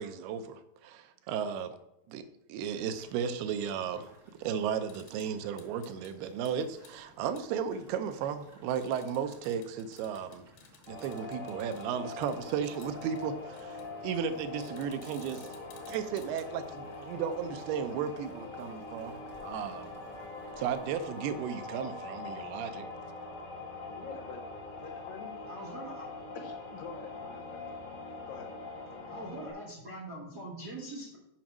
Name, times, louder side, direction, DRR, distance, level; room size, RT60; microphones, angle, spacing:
voice 1, 0.0-1.8 2.1-4.1 4.4-10.5 10.9-15.5 15.9-19.2 19.4-19.9 20.6-22.9, right 7 dB, 85° right, 10 dB, 2.6 m, -35 dB
sound 1, 2.6-21.9, right 1 dB, 30° right, 1.6 m, -60 dB
sound 2, 4.9-5.3 5.6-6.1 6.4-6.5 6.8-6.9 7.4-7.5 8.7-11.9 12.2-13.2 13.5-13.8 14.6-16.5, left 7 dB, 90° left, 3.3 m, -57 dB
sound 3, 10.9-29.5, left 3 dB, 55° left, 3.7 m, -43 dB
voice 2, 24.0-24.5 24.8-25.3 26.3-27.8 28.1-28.5, left 6 dB, 70° left, 1 dB, 2.4 m, -46 dB
voice 3, 25.5-26.1 29.1-31.2, right 1 dB, 55° right, -4 dB, 1.1 m, -42 dB
7.4 x 5.2 x 6.0 m, 0.89 s
omnidirectional pair, 4.5 m